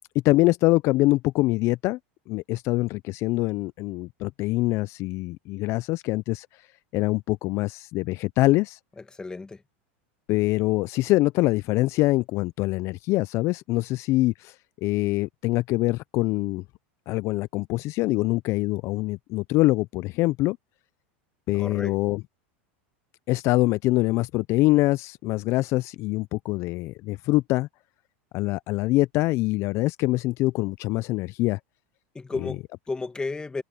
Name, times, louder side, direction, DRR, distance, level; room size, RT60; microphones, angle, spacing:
voice 1, 0.2-2.0 2.3-6.5 6.9-8.8 10.3-16.6 17.1-20.6 21.5-22.2 23.3-27.7 28.3-31.6 32.4-32.5, left 19 dB, 45° left, 0.4 m, -24 dB
voice 2, 9.2-9.6 21.5-22.0 32.1-33.6, left 3 dB, 10° left, 1.5 m, -33 dB
supercardioid pair, 125°, 6 cm